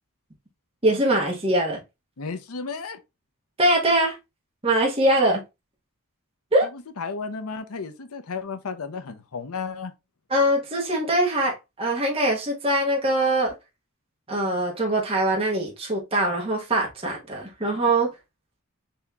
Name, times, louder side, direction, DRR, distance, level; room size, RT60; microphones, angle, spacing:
voice 1, 0.8-1.8 3.6-4.2 4.6-5.4 6.5-6.7 10.3-13.5 14.3-18.1, right 1 dB, 25° right, 1.2 m, -22 dB
voice 2, 2.2-3.0 6.7-9.9, left 5 dB, 85° left, 0.7 m, -33 dB
4.2 x 2.8 x 3.5 m
head